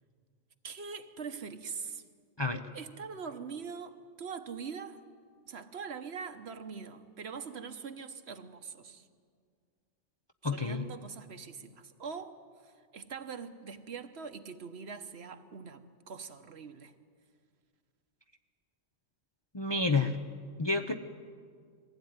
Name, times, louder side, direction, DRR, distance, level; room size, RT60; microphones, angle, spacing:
voice 1, 0.6-2.0 2.7-5.0 5.5-9.0 10.4-12.3 12.6-16.9, right 6 dB, 60° right, 9 dB, 1.2 m, -43 dB
voice 2, 10.4-10.9 19.5-20.2 20.6-20.9, left 3 dB, 25° left, 5 dB, 0.6 m, -29 dB
22.0 x 16.0 x 9.6 m, 2.1 s
omnidirectional pair, 1.2 m